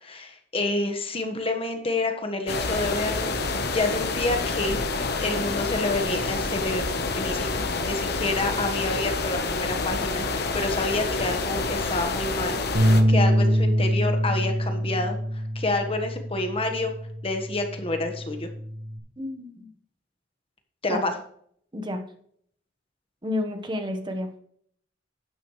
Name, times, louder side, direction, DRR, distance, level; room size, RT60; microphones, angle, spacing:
voice 1, 0.0-4.8 5.2-6.8 7.1-15.2 15.5-16.9 17.2-18.5 20.8-21.1, left 2 dB, 30° left, 6 dB, 1.3 m, -28 dB
sound 1, 2.5-13.0, left 3 dB, 60° left, 1.1 m, -28 dB
sound 2, 12.7-19.0, equal, 60° right, 3.7 m, -25 dB
voice 2, 19.2-19.7 20.9-21.0 21.7-22.1 23.2-24.3, left 1 dB, 25° right, 6 dB, 1.2 m, -30 dB
12.5 x 9.3 x 3.2 m, 0.64 s
head